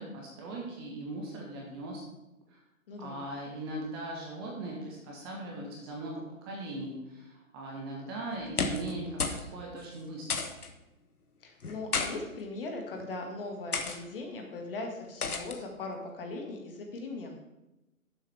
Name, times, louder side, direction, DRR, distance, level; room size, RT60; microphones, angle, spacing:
voice 1, 0.0-2.0 3.0-10.5, right 2 dB, 15° right, -2 dB, 1.0 m, -39 dB
voice 2, 2.9-3.2 11.4-17.4, left 2 dB, 40° left, 2 dB, 1.7 m, -39 dB
sound 1, 8.4-8.9 9.2-9.5 9.7-9.8 10.3-10.7 11.6-12.1 12.9-13.1 13.7-14.0 15.2-15.6, left 4 dB, 80° left, 1.3 m, -32 dB
11.5 x 7.2 x 3.3 m, 0.96 s
figure-of-eight pair, 145°, 44 cm